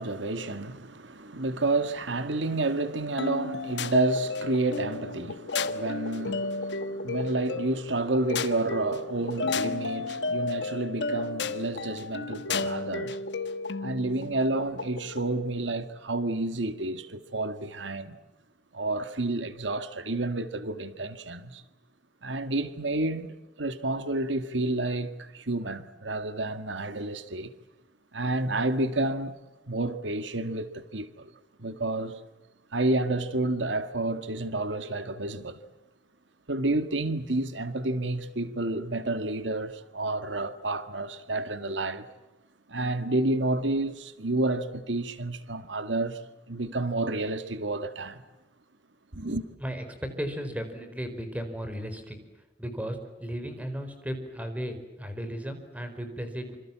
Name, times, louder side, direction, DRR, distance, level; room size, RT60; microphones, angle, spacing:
voice 1, 0.0-13.2 13.8-18.2 18.7-21.6 22.2-27.5 28.1-29.4 29.7-31.3 31.6-32.2 32.7-35.6 36.5-42.1 42.7-46.2 46.5-48.2 49.1-49.4, right 2 dB, 90° right, 1.7 m, -30 dB
sound 1, 3.2-15.3, left 3 dB, 70° left, 1.4 m, -33 dB
voice 2, 49.6-52.2 52.6-56.6, equal, 10° right, 4.6 m, -35 dB
27.0 x 27.0 x 7.4 m
head